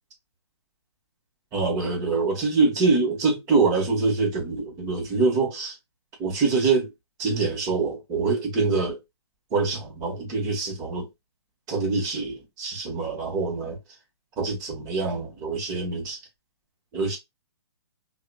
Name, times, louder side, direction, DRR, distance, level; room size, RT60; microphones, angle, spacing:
voice 1, 1.5-5.7 6.2-6.9 7.2-9.0 9.5-11.1 11.7-13.8 14.4-16.2 16.9-17.2, right 4 dB, 25° right, 1.2 m, -25 dB
2.8 x 2.4 x 2.2 m
hypercardioid pair, 140°, 15 cm